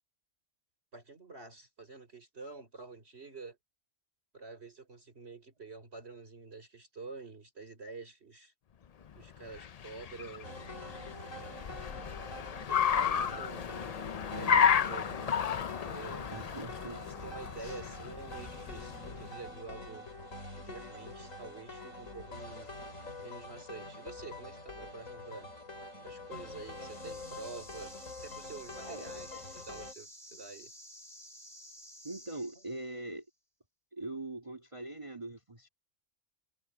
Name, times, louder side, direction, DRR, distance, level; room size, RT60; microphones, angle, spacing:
voice 1, 0.9-3.6 4.3-8.5 9.1-10.7 11.2-11.7 12.7-16.3 17.2-20.1 20.5-22.7 23.2-25.5 26.0-27.9 28.2-30.7, right 4 dB, 55° right, 4.4 m, -48 dB
Car, 9.2-19.4, left 7 dB, 65° left, 0.4 m, -32 dB
sound 1, 10.4-29.9, left 2 dB, 85° left, 5.7 m, -46 dB
voice 2, 16.3-17.0 17.6-17.8 28.8-29.6 32.0-33.3 33.9-35.7, right 2 dB, 25° right, 2.1 m, -42 dB
sound 2, 26.4-33.1, equal, 20° left, 7.2 m, -53 dB
omnidirectional pair, 1.3 m